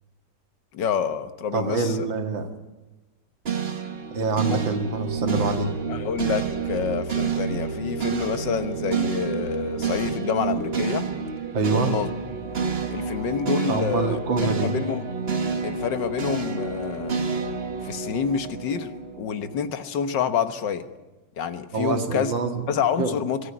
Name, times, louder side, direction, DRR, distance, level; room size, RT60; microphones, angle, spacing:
voice 1, 0.7-2.1 4.4-4.6 5.9-11.1 11.7-12.1 12.9-14.2 14.6-15.1 15.6-17.2 17.8-20.9 21.4-22.3 22.7-23.4, left 7 dB, 70° left, 10 dB, 1.8 m, -28 dB
voice 2, 1.5-2.5 4.1-5.7 11.5-12.0 13.7-14.7 21.7-22.6 23.0-23.2, right 3 dB, 90° right, 6 dB, 2.6 m, -25 dB
sound 1, 3.4-19.7, right 5 dB, 35° right, 1.5 m, -29 dB
23.5 x 13.5 x 9.8 m, 1.1 s
omnidirectional pair, 2.0 m